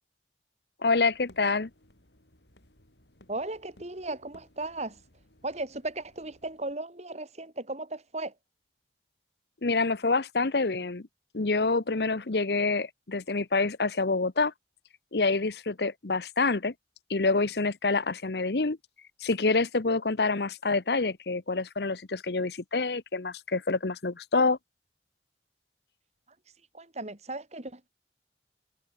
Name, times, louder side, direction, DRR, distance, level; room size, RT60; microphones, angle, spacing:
voice 1, 0.8-1.7 9.6-11.1 11.3-14.5 15.1-16.7 17.1-18.8 19.2-24.6, left 3 dB, 65° left, 1.0 m, -27 dB
sound 1, 1.0-6.7, left 1 dB, 80° left, 6.3 m, -60 dB
voice 2, 3.3-5.0 5.4-8.3 26.7-27.9, right 2 dB, 40° right, 3.1 m, -36 dB
head